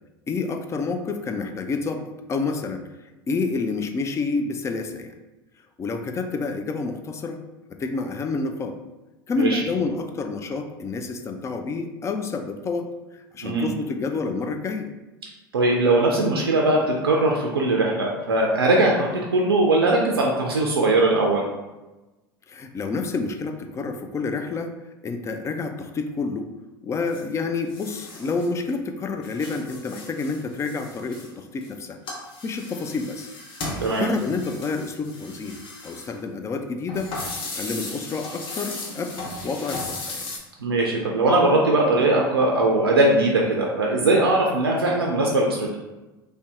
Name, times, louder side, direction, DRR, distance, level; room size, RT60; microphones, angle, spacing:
voice 1, 0.3-2.8 3.3-5.1 5.8-7.4 7.7-8.8 9.3-12.9 13.1-14.9 22.5-24.7 25.0-26.5 26.8-32.0 32.4-33.3 33.7-37.1 37.5-40.3, left 4 dB, 25° left, 6 dB, 0.3 m, -29 dB
voice 2, 15.5-21.4 33.8-34.0 40.6-45.7, right 2 dB, 85° right, -1 dB, 0.4 m, -20 dB
sound 1, 27.1-27.2 27.7-28.7 29.0-31.7 32.1-36.2 36.9-40.4, left 2 dB, 45° left, 0.7 m, -36 dB
2.6 x 2.2 x 3.3 m, 1.1 s
figure-of-eight pair, 75°, 12 cm